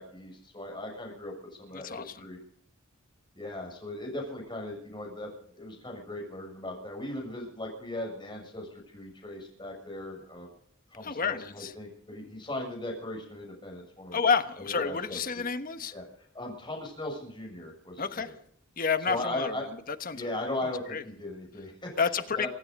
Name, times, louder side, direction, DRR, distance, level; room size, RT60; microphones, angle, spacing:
voice 1, 0.0-2.4 3.3-10.5 10.9-14.2 14.6-15.4 15.9-18.3 19.1-19.6 20.1-21.9 22.4-22.5, left 1 dB, 25° left, 6.8 m, -38 dB
voice 2, 1.7-2.3 11.0-11.7 14.1-15.9 18.0-18.3 18.8-19.5 19.9-20.3 20.9-21.0 22.0-22.5, left 5 dB, 45° left, 1.2 m, -29 dB
26.5 x 9.9 x 5.3 m
head